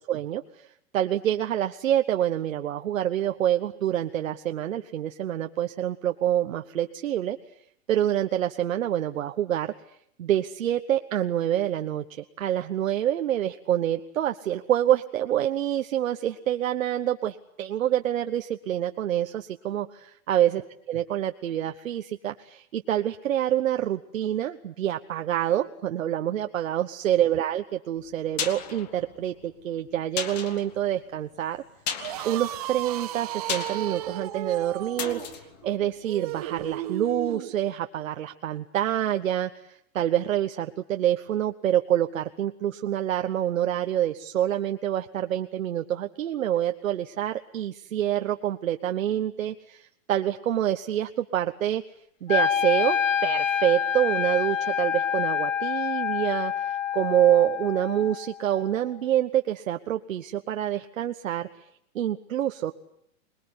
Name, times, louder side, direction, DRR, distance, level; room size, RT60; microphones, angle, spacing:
voice 1, 0.1-0.7 0.9-7.4 7.9-9.7 10.2-19.9 20.3-20.6 20.9-31.6 32.2-51.8 52.2-61.5 61.9-62.7, right 11 dB, 70° right, 6 dB, 1.2 m, -27 dB
sound 1, 28.0-36.8 37.1-37.2, left 7 dB, 30° left, 1.7 m, -37 dB
sound 2, 32.0-37.5, right 13 dB, 30° right, 1.3 m, -34 dB
Wind instrument woodwind instrument, 52.3-58.4, left 8 dB, 65° left, 1.5 m, -27 dB
26.0 x 20.5 x 9.6 m, 0.71 s
hypercardioid pair, 180°, 41 cm